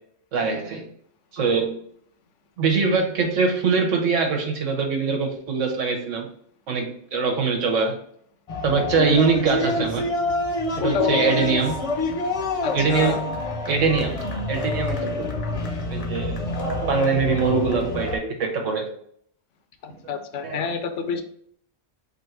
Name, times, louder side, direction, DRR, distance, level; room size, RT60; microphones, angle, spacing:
voice 1, 0.3-0.8 1.3-1.8 2.6-6.3 6.7-8.0 8.6-10.1 10.8-11.7 12.7-13.4 13.7-14.2 14.5-15.3 15.9-18.9 20.4-20.7, right 5 dB, 90° right, 2 dB, 1.4 m, -23 dB
sound 1, 8.5-18.2, left 3 dB, 35° left, 0.6 m, -27 dB
voice 2, 10.8-11.3 12.6-13.2 19.8-21.2, left 6 dB, 80° left, 7 dB, 1.0 m, -28 dB
4.4 x 2.6 x 4.5 m, 0.64 s
omnidirectional pair, 1.3 m